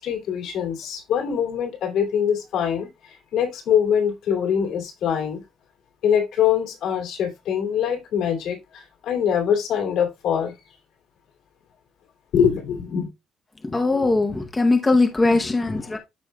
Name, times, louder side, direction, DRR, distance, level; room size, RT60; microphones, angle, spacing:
voice 1, 0.0-5.4 6.0-10.5 12.3-13.1 15.3-15.4 15.8-16.0, left 8 dB, 75° left, 2.6 m, -23 dB
voice 2, 13.7-16.0, left 3 dB, 15° left, 0.8 m, -20 dB
13.0 x 5.3 x 2.3 m
cardioid pair, 170°, 0 cm